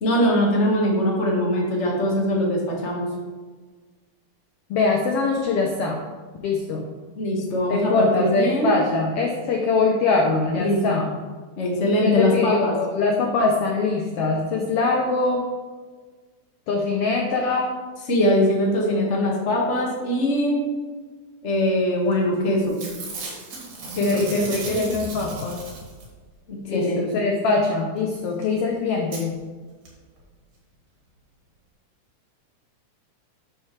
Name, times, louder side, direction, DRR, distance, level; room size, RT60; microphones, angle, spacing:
voice 1, 0.0-3.1 7.1-8.7 10.5-10.8 11.6-12.8 18.1-20.6 21.4-22.9 23.9-24.8 26.5-27.0, left 1 dB, 30° left, -2 dB, 1.4 m, -22 dB
voice 2, 4.7-6.0 6.4-6.9 7.7-11.1 12.0-15.5 16.7-17.7 24.0-25.6 26.7-29.4, left 3 dB, 70° left, 1 dB, 1.5 m, -23 dB
Packing tape duct tape / Tearing, 22.1-22.4 22.6-26.2 28.2-28.3 28.4-28.5 29.1-29.2 29.9-30.0 30.2-30.3, right 2 dB, 90° right, 3.7 m, -35 dB
11.0 x 6.5 x 3.2 m, 1.4 s
omnidirectional pair, 3.5 m